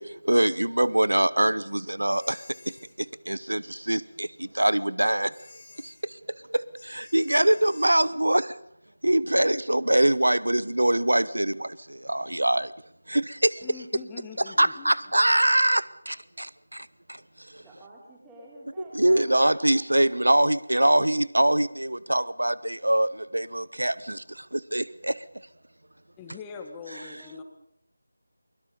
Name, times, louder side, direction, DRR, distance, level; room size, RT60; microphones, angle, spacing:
voice 1, 0.0-5.3 5.8-6.2 6.5-8.6 9.0-12.7 13.1-13.6 14.6-17.2 17.5-17.6 18.9-25.2, right 1 dB, 85° right, 19 dB, 0.9 m, -24 dB
sound 1, 2.1-2.9 5.3-6.0 6.8-8.1, left 3 dB, 50° left, 3.1 m, -51 dB
voice 2, 13.6-14.9 26.2-27.4, left 5 dB, 10° left, 6 dB, 1.7 m, -42 dB
voice 3, 17.6-20.1 26.5-27.4, right 1 dB, 10° right, -5 dB, 5.1 m, -50 dB
22.5 x 22.0 x 5.4 m, 0.74 s
figure-of-eight pair, 165°, 0 cm